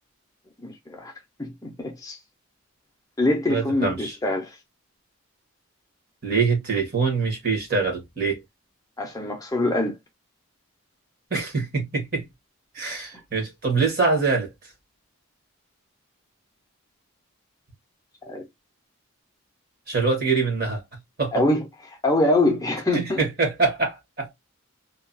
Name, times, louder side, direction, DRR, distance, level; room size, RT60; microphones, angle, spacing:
voice 1, 0.6-1.1 1.4-2.2 3.2-4.6 9.0-9.9 18.3-18.4 21.3-23.2, left 1 dB, 15° left, 0.5 m, -24 dB
voice 2, 3.5-4.2 6.2-8.4 11.3-12.3 12.7-14.5 19.9-20.8 21.2-21.4 22.9-24.3, right 4 dB, 45° right, 1.2 m, -24 dB
2.8 x 2.2 x 2.5 m
head